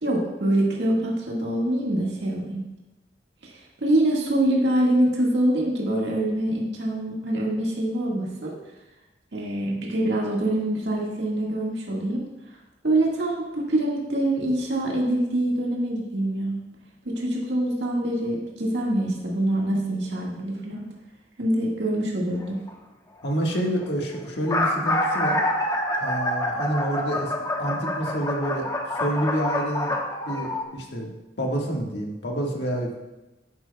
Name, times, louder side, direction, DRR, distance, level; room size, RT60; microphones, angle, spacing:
voice 1, 0.0-2.7 3.4-8.5 9.3-12.2 12.8-16.6 17.0-20.8 21.4-22.6, right 1 dB, 80° right, -3 dB, 1.7 m, -25 dB
sound 1, 22.4-22.7 23.5-23.6 23.8-23.9 24.3-30.6, left 1 dB, 20° left, 0.9 m, -26 dB
voice 2, 23.2-25.4 26.0-27.3 27.6-29.9 30.2-31.1 31.4-32.9, right 1 dB, 75° left, 0 dB, 1.5 m, -28 dB
11.5 x 8.9 x 2.3 m, 1.0 s
head